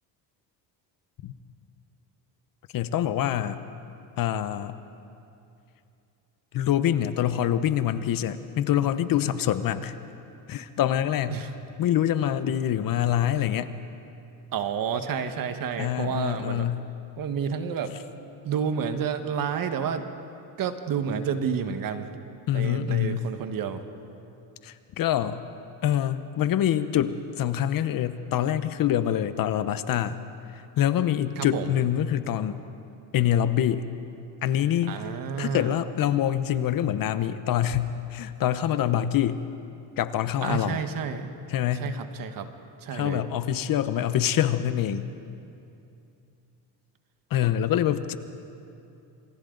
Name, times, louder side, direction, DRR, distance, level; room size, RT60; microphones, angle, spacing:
voice 1, 2.7-3.6 4.2-4.7 6.5-9.9 10.5-11.4 11.8-13.7 15.8-16.8 22.5-23.3 24.6-25.4 25.8-30.2 30.8-32.6 33.1-33.9 34.4-35.0 35.4-39.4 40.0-40.8 41.5-41.9 42.9-45.1 47.3-48.2, left 11 dB, 50° left, 12 dB, 1.0 m, -25 dB
voice 2, 14.5-16.7 17.2-17.9 18.4-20.0 20.6-22.1 22.5-23.8 31.4-31.7 34.8-35.8 40.4-41.3 41.7-42.5 42.8-43.2, right 7 dB, 50° right, 8 dB, 1.6 m, -30 dB
27.0 x 27.0 x 4.0 m, 2.7 s
cardioid pair, 115°, 43 cm